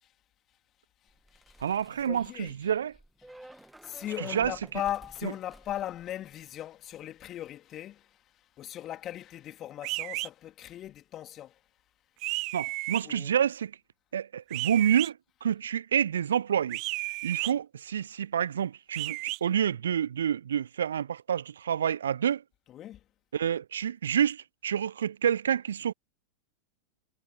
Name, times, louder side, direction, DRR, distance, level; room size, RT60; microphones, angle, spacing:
voice 1, 1.0-2.8 3.2-11.7 13.0-13.4 17.4-17.6 22.7-23.0, left 12 dB, 30° left, 3.5 m, -39 dB
sound 1, 1.1-6.6 6.9-7.3, right 1 dB, 5° right, 1.6 m, -52 dB
voice 2, 1.6-2.9 4.3-4.5 12.5-13.8 14.1-22.4 23.3-25.9, right 9 dB, 65° right, 0.6 m, -28 dB
sound 2, 9.8-10.3 12.2-13.0 14.5-15.1 16.7-17.5 18.9-19.4, right 27 dB, 40° right, 1.0 m, -33 dB
figure-of-eight pair, 90°, 0 cm